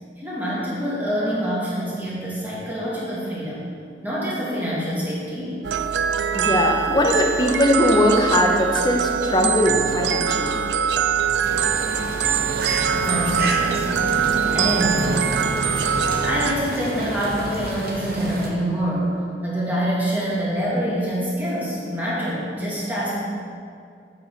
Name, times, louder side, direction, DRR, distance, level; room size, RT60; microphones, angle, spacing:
voice 1, 0.2-3.6 4.0-5.6 12.9-14.0 14.5-15.3 15.8-19.2 19.4-23.2, equal, 10° right, -8 dB, 2.1 m, -26 dB
sound 1, 5.6-16.5, right 7 dB, 80° right, 0.4 m, -23 dB
voice 2, 6.3-10.6, left 1 dB, 25° left, 2 dB, 0.8 m, -20 dB
sound 2, 11.4-18.5, right 1 dB, 55° right, 1.0 m, -29 dB
8.3 x 6.8 x 4.1 m, 2.4 s
head